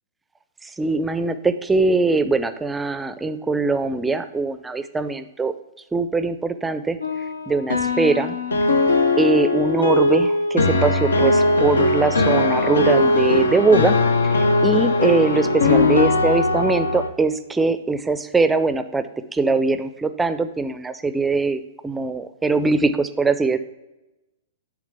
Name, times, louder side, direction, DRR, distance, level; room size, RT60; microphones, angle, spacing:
voice 1, 0.6-5.5 5.9-7.0 7.5-8.4 9.2-14.0 14.2-14.3 14.6-23.6, right 3 dB, 10° right, 11 dB, 0.4 m, -21 dB
sound 1, 7.0-17.1, left 2 dB, 80° left, 0.6 m, -19 dB
9.6 x 3.6 x 3.3 m, 0.99 s
figure-of-eight pair, 110°, 0 cm